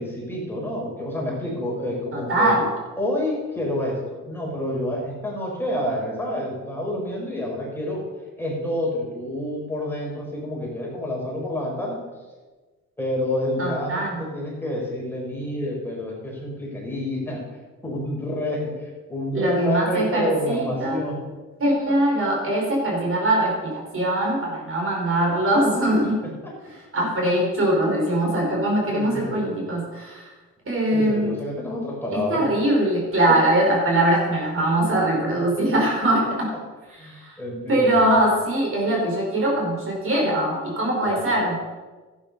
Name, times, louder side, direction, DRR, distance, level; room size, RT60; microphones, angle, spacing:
voice 1, 0.0-2.5 3.0-8.0 8.4-12.0 13.0-17.4 17.8-21.2 28.9-29.6 30.9-32.4 33.3-33.4 34.0-34.1 34.7-34.8 35.6-35.7 37.0-38.0 41.0-41.3, left 1 dB, 5° left, -4 dB, 4.8 m, -28 dB
voice 2, 2.1-2.7 13.6-14.2 19.3-21.0 21.6-26.1 26.9-30.3 30.6-31.3 32.1-36.5 37.0-37.4 37.7-41.6, right 1 dB, 45° right, -2 dB, 5.0 m, -22 dB
12.0 x 9.7 x 5.4 m, 1.3 s
cardioid pair, 90°, 30 cm